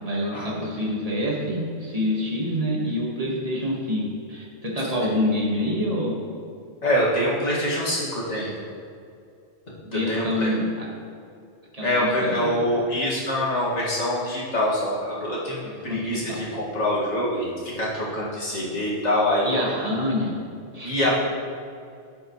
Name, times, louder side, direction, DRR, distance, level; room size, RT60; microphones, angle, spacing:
voice 1, 0.0-6.2 9.9-10.9 11.7-12.7 15.6-16.5 19.4-20.3 20.7-21.1, left 1 dB, 30° right, -4 dB, 1.9 m, -27 dB
voice 2, 6.8-8.5 9.9-10.5 11.8-15.6 15.8-17.5 17.8-19.6 20.8-21.1, left 1 dB, 65° left, -6 dB, 2.5 m, -25 dB
10.5 x 9.5 x 3.2 m, 2.5 s
omnidirectional pair, 1.3 m